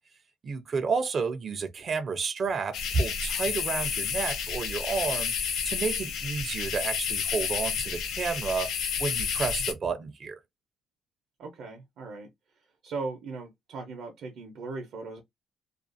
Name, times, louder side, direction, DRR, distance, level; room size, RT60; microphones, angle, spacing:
voice 1, 0.4-10.4, right 4 dB, 35° right, 0.5 m, -31 dB
sound 1, 2.7-9.7, left 7 dB, 85° left, 0.5 m, -31 dB
voice 2, 11.4-12.3 12.8-15.2, right 3 dB, 70° right, 0.7 m, -38 dB
2.5 x 2.4 x 2.5 m
cardioid pair, 155°, 0 cm